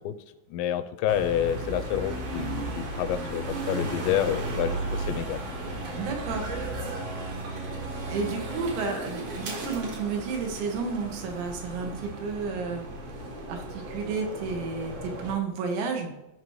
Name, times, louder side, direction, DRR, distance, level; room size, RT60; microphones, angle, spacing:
voice 1, 0.5-5.4, left 10 dB, 85° left, 11 dB, 2.7 m, -28 dB
sound 1, 1.1-15.3, right 2 dB, 65° right, 1.5 m, -35 dB
voice 2, 6.0-6.5 8.1-12.9 13.5-16.1, right 5 dB, 85° right, 3 dB, 3.5 m, -31 dB
15.0 x 5.6 x 3.1 m, 0.95 s
omnidirectional pair, 5.0 m